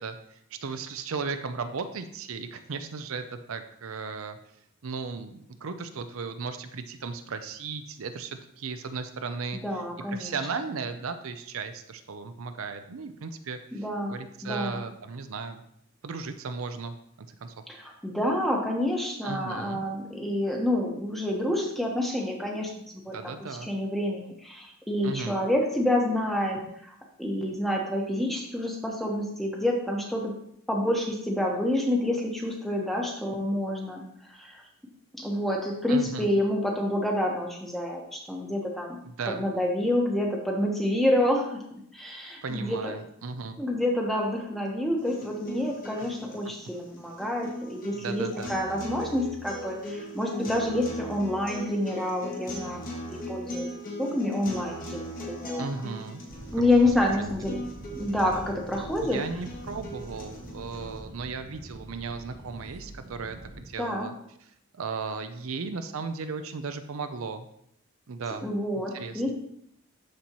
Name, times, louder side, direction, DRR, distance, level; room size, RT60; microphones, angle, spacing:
voice 1, 0.0-4.4 4.8-9.6 10.1-15.6 16.0-17.5 19.2-19.8 23.1-23.7 25.0-25.3 35.9-36.3 39.1-39.4 42.4-43.6 46.0-46.1 47.9-48.5 55.6-56.2 56.5-56.8 59.0-64.1 64.7-67.5 68.1-68.5 68.9-69.3, right 4 dB, 75° right, 8 dB, 0.5 m, -36 dB
voice 2, 9.5-10.3 13.7-14.8 17.7-23.2 23.7-30.3 30.7-34.0 34.3-34.6 35.2-39.0 39.3-41.6 41.9-42.8 43.6-53.7 54.0-55.7 56.5-57.6 57.9-59.2 63.8-64.1 68.4-69.3, left 1 dB, ahead, -1 dB, 1.1 m, -28 dB
sound 1, 45.0-61.0, equal, 40° left, 1.5 m, -39 dB
sound 2, 56.3-63.6, right 1 dB, 50° right, 1.1 m, -44 dB
13.0 x 4.3 x 3.0 m, 0.72 s
head